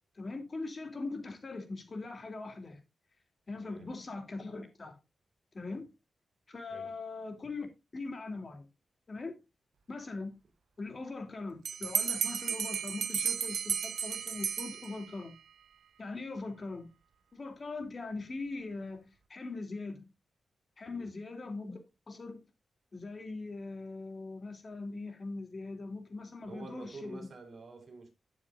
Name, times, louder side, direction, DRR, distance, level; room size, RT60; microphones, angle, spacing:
voice 1, 0.1-2.8 3.5-5.0 5.5-5.9 6.5-7.7 7.9-8.6 9.1-9.4 9.9-10.3 10.8-15.4 16.0-16.9 17.3-20.1 20.8-21.8 22.1-22.4 22.9-27.3, left 3 dB, 40° left, 2.9 m, -41 dB
Bell, 11.7-15.3, right 7 dB, 80° right, 0.9 m, -33 dB
voice 2, 26.4-28.1, right 3 dB, 50° right, 4.3 m, -48 dB
12.0 x 9.3 x 2.5 m
cardioid pair, 95°, 0 cm